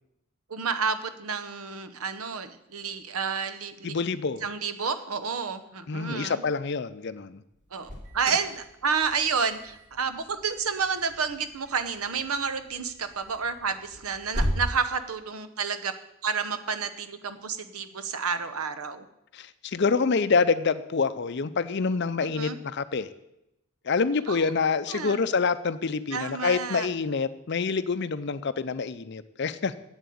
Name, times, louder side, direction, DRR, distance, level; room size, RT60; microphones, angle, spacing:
voice 1, 0.5-4.0 4.4-6.4 7.7-15.9 16.2-19.0 22.4-22.6 24.3-24.4 24.9-25.2 26.1-26.9, right 5 dB, 85° right, 11 dB, 0.9 m, -30 dB
voice 2, 3.8-4.4 5.9-7.4 19.3-23.1 23.8-29.7, left 4 dB, 50° left, 13 dB, 0.5 m, -27 dB
Alarm, 7.5-14.7, equal, 35° right, 2.6 m, -37 dB
8.1 x 7.6 x 8.5 m, 0.85 s
head